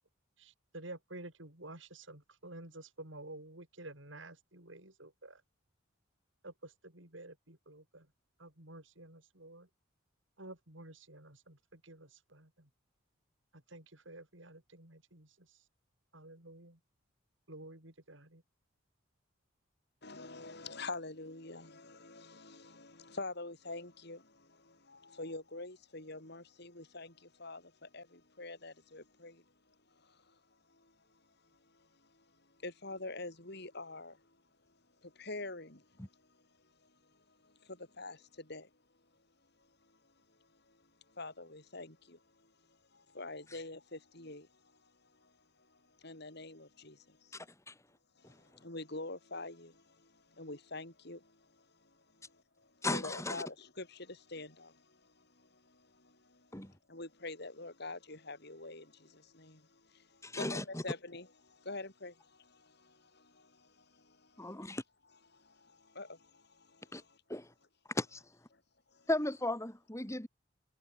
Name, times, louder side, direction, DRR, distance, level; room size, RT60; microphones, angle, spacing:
voice 1, 0.4-5.4 6.4-8.1 8.4-9.7 10.4-12.7 13.5-15.6 16.1-16.8 17.5-18.4, right 2 dB, 65° right, 5.7 m, -51 dB
voice 2, 20.0-29.4 30.0-30.3 30.7-30.9 32.6-34.2 35.0-35.8 37.4-38.7 41.1-42.2 42.9-44.5 45.2-45.3 46.0-47.4 48.2-51.4 52.3-52.4 52.9-56.5 56.9-64.5 65.3-67.2 68.9-69.1, left 2 dB, 55° left, 5.8 m, -46 dB
voice 3, 47.3-47.7 52.8-53.4 56.5-56.7 60.2-60.8 64.4-64.8 66.9-67.0 67.3-67.5 67.9-68.2 69.1-70.3, left 1 dB, 15° left, 2.7 m, -36 dB
head